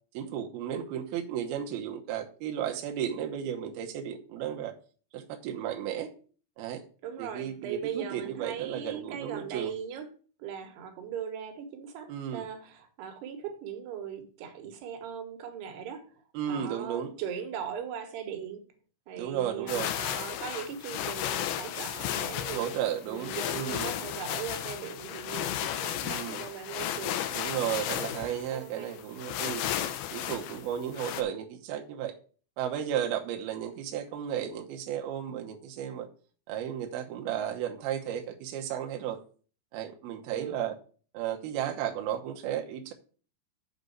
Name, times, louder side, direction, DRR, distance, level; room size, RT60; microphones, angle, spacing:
voice 1, 0.1-4.7 5.1-6.1 6.6-6.8 7.2-9.7 12.1-12.5 16.3-17.1 19.2-19.9 22.5-24.0 26.0-26.4 27.3-29.7 30.1-32.1 32.6-36.1 36.5-39.2 39.7-40.8 41.1-42.9, right 10 dB, 85° right, 2.2 m, -34 dB
voice 2, 7.0-10.1 10.4-16.1 16.5-18.6 19.1-22.7 23.1-27.3 28.0-29.0 40.3-40.6, right 8 dB, 70° right, 2.9 m, -39 dB
sound 1, 19.7-31.2, left 11 dB, 80° left, 2.5 m, -34 dB
7.4 x 5.2 x 6.8 m
omnidirectional pair, 5.8 m